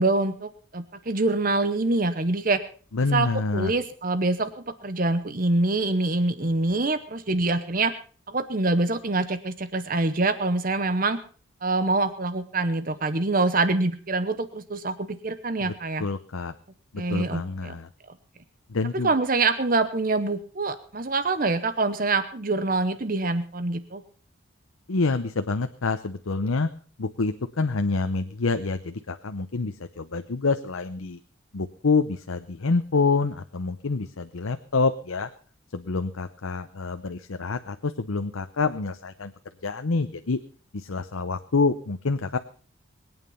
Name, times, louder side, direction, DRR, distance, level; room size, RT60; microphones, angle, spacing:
voice 1, 0.0-2.6 3.1-3.3 3.5-4.5 4.8-7.9 8.3-11.2 11.6-16.0 17.0-17.7 18.9-24.0, right 3 dB, 40° right, 12 dB, 0.9 m, -25 dB
voice 2, 2.9-3.7 15.6-15.7 16.0-16.5 17.1-17.9 18.7-19.1 24.9-26.7 27.0-31.2 31.5-35.3 35.7-39.3 39.6-40.4 40.7-42.4, left 4 dB, 90° left, 8 dB, 0.8 m, -27 dB
21.5 x 9.1 x 5.5 m, 0.41 s
head